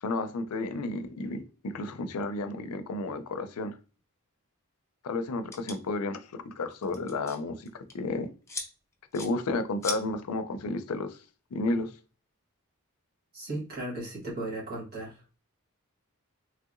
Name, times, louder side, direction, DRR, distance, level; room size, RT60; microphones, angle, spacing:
voice 1, 0.0-3.8 5.0-8.3 9.1-11.2 11.5-11.9, left 2 dB, 80° left, 0.5 m, -32 dB
sound 1, 5.5-5.8 6.7-7.4 7.7-7.9 8.5-8.7 9.1-9.3 9.8-10.0, left 3 dB, 15° left, 0.6 m, -36 dB
voice 2, 13.3-15.2, right 1 dB, 45° right, 1.4 m, -36 dB
3.2 x 2.8 x 2.5 m
head